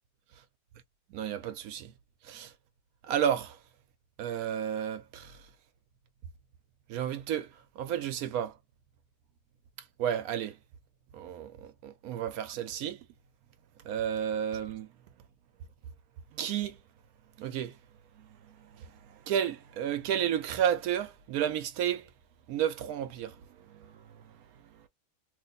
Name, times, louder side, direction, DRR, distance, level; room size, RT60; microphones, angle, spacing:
voice 1, 1.1-1.9 2.2-2.5 3.0-3.6 4.2-5.4 6.9-8.5 10.0-10.6 11.1-13.0 13.8-14.9 16.3-16.8 17.4-17.8 18.2-22.1 22.5-23.4 23.7-24.2, right 9 dB, 75° right, 1.0 m, -32 dB
2.8 x 2.0 x 3.9 m
omnidirectional pair, 1.6 m